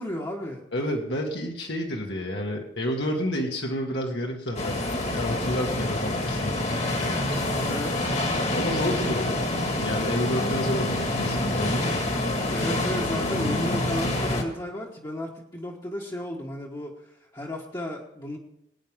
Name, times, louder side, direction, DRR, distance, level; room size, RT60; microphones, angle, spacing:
voice 1, 0.0-0.6 7.5-8.4 12.5-18.4, left 1 dB, 25° left, -4 dB, 1.4 m, -34 dB
voice 2, 0.7-6.7 7.3-7.4 8.5-12.1, equal, 65° left, -1 dB, 1.9 m, -30 dB
sound 1, 4.5-14.4, left 1 dB, 40° left, 1.9 m, -27 dB
22.0 x 9.5 x 3.7 m, 0.83 s
head